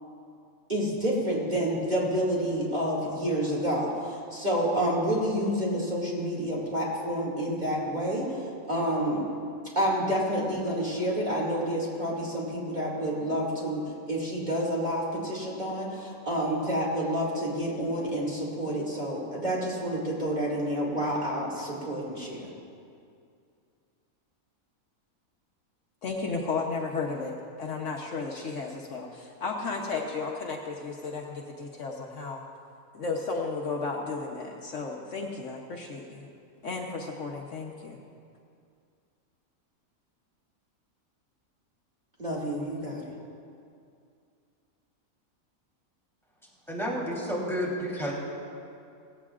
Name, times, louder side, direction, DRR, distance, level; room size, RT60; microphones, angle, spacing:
voice 1, 0.7-9.2 9.8-13.8 14.1-22.5 42.2-43.1, equal, 30° right, -5 dB, 2.5 m, -29 dB
voice 2, 26.0-32.4 32.9-36.3 36.6-38.0, left 4 dB, 60° left, 0 dB, 1.2 m, -34 dB
voice 3, 46.7-48.1, equal, ahead, -5 dB, 3.5 m, -30 dB
17.5 x 16.0 x 2.5 m, 2.4 s
omnidirectional pair, 1.5 m